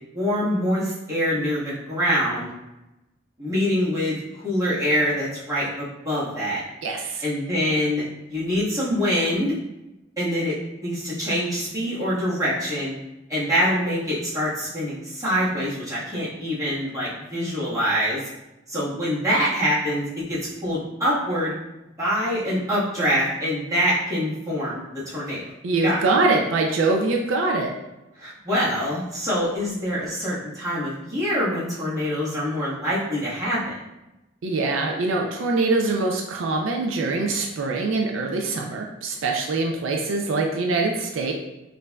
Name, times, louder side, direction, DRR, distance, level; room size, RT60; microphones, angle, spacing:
voice 1, 0.1-2.5 3.4-4.2 4.4-6.6 7.2-9.5 10.2-10.5 10.8-13.0 13.3-18.2 18.7-21.5 22.0-25.5 25.8-26.0 28.2-33.8, equal, 20° right, -9 dB, 1.3 m, -25 dB
voice 2, 6.8-7.2 25.6-27.7 34.4-41.3, right 3 dB, 80° right, 1 dB, 0.4 m, -23 dB
5.2 x 2.6 x 2.2 m, 0.97 s
head